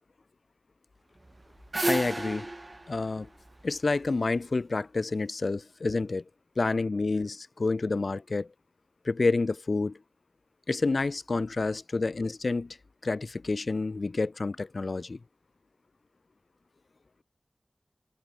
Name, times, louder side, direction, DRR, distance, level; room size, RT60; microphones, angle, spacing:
sound 1, 1.2-4.4, right 2 dB, 40° right, 2.3 m, -33 dB
voice 1, 1.9-2.5 2.9-3.3 3.6-6.2 6.6-8.5 9.0-10.0 10.7-12.8 13.0-15.2, left 3 dB, 75° left, 0.8 m, -29 dB
wide cardioid pair, 50°, 0 cm